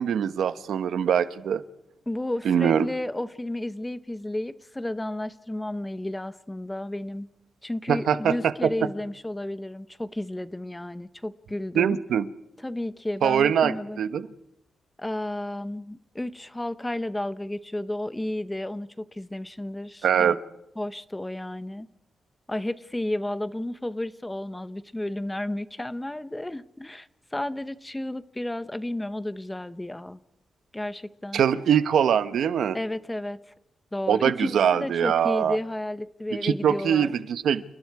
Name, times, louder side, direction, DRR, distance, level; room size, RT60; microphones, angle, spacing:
voice 1, 0.0-1.6 2.4-2.9 7.9-8.3 8.6-8.7 11.7-12.2 13.2-14.3 20.0-20.4 31.3-32.8 34.1-35.6 36.4-37.6, right 8 dB, 80° right, 1.0 m, -23 dB
voice 2, 2.1-7.3 7.6-12.0 12.6-14.0 15.0-20.4 20.8-21.9 22.5-30.2 30.7-31.4 32.7-33.4 33.9-37.1, left 1 dB, 10° left, 0.9 m, -32 dB
30.0 x 29.5 x 4.8 m
wide cardioid pair, 145°, 0 cm